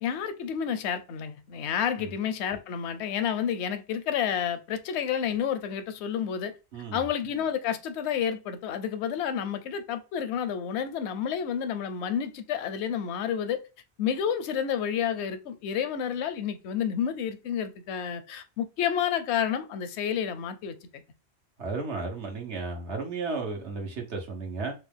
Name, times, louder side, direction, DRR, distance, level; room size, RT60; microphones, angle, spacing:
voice 1, 0.0-6.5 6.9-13.6 14.0-20.8, left 8 dB, 80° left, 0.9 m, -30 dB
voice 2, 6.7-7.0 21.6-24.7, right 3 dB, 80° right, 1.4 m, -33 dB
4.2 x 2.3 x 3.4 m
omnidirectional pair, 1.1 m